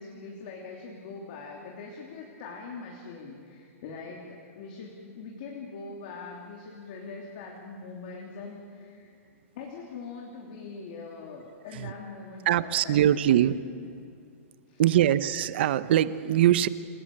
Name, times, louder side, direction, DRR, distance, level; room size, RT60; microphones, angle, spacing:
voice 1, 0.0-9.1 9.5-13.5 14.7-15.0, left 4 dB, 40° left, -1 dB, 3.1 m, -42 dB
voice 2, 12.4-13.6 14.8-16.7, right 12 dB, 45° right, 15 dB, 0.8 m, -22 dB
28.0 x 18.5 x 8.7 m, 2.4 s
hypercardioid pair, 175°, 8 cm